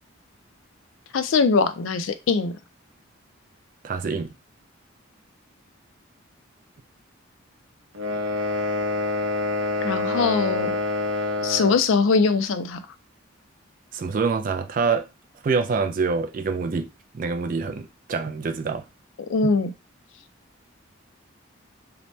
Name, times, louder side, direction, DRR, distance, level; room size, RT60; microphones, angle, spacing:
voice 1, 1.1-2.5 9.8-10.7 11.4-12.8 19.3-19.7, left 4 dB, 70° left, 0.4 m, -21 dB
voice 2, 3.8-4.3 13.9-15.1 15.4-16.9 17.1-18.9 19.4-19.5, right 4 dB, 40° right, 0.3 m, -26 dB
sound 1, 7.9-11.8, left 2 dB, 75° right, 0.7 m, -26 dB
2.8 x 2.1 x 3.1 m
head